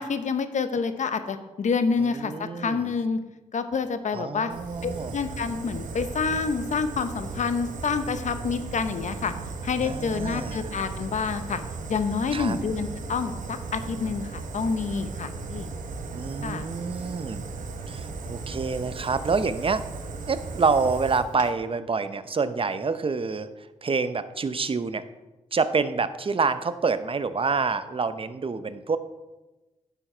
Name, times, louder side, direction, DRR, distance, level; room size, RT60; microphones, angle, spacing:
voice 1, 0.0-3.2 3.5-4.5 4.8-9.3 9.6-11.6 11.9-15.7 16.4-16.6, left 5 dB, 65° left, 10 dB, 0.8 m, -28 dB
voice 2, 2.0-2.9 4.1-5.1 9.8-10.6 12.3-12.6 16.1-17.4 17.9-19.8 20.3-23.5 23.8-25.0 25.5-29.0, right 4 dB, 45° right, 12 dB, 0.7 m, -27 dB
Fire, 4.5-21.5, right 4 dB, 85° right, 0.9 m, -36 dB
10.0 x 7.2 x 4.4 m, 1.1 s
cardioid pair, 50°, 13 cm